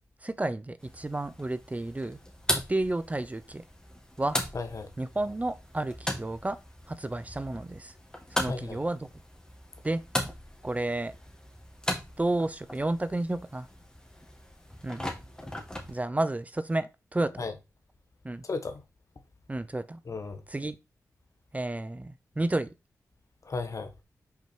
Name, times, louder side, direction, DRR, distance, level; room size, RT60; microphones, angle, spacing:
voice 1, 0.2-2.2 2.5-3.6 4.2-4.4 5.0-6.6 6.9-7.9 8.3-9.1 9.8-10.0 10.6-11.1 12.2-13.7 14.8-15.0 15.9-17.3 18.2-18.4 19.5-20.0 20.5-20.8 21.5-22.7, right 2 dB, 25° right, 0.6 m, -31 dB
sound 1, 0.8-16.0, left 1 dB, 10° left, 2.0 m, -38 dB
voice 2, 4.5-4.9 8.4-8.8 17.4-17.5 18.4-18.8 20.1-20.4 23.4-23.9, left 3 dB, 55° left, 1.3 m, -34 dB
5.7 x 4.5 x 4.5 m
cardioid pair, 45°, 6 cm